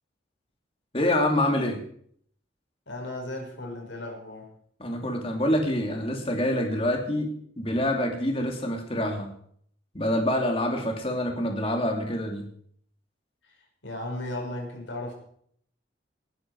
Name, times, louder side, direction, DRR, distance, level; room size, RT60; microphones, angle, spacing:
voice 1, 0.9-1.8 4.8-9.3 9.9-12.5, left 1 dB, 30° left, 2 dB, 2.8 m, -26 dB
voice 2, 2.9-4.5 13.8-15.1, left 1 dB, 75° left, 1 dB, 5.5 m, -35 dB
19.0 x 11.5 x 4.8 m, 0.64 s
head